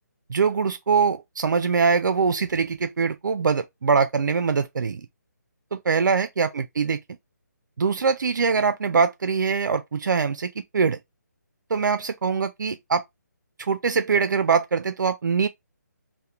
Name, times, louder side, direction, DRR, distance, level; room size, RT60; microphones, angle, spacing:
voice 1, 0.3-5.1 5.7-7.0 7.8-11.0 11.7-13.0 13.6-15.5, right 5 dB, 90° right, 0.4 m, -23 dB
2.8 x 2.1 x 2.3 m
hypercardioid pair, 170°, 10 cm